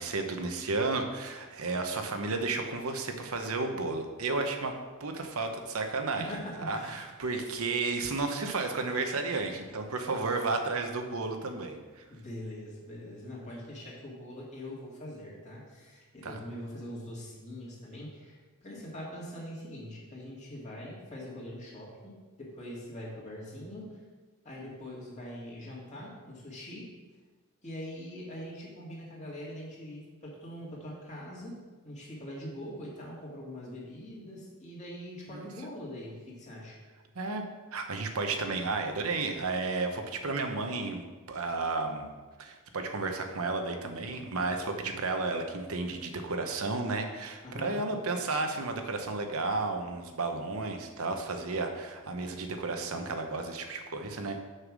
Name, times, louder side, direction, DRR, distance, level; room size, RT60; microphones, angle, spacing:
voice 1, 0.0-6.3 6.6-12.0 16.2-16.4 35.3-35.5 37.1-37.5 37.7-41.0 41.3-42.1 42.4-54.4, right 3 dB, 70° right, 5 dB, 0.9 m, -32 dB
voice 2, 6.2-7.1 12.1-23.9 24.4-26.9 27.6-31.6 31.8-36.8 47.4-47.8, left 1 dB, 35° left, -4 dB, 2.3 m, -43 dB
6.6 x 5.6 x 6.2 m, 1.3 s
head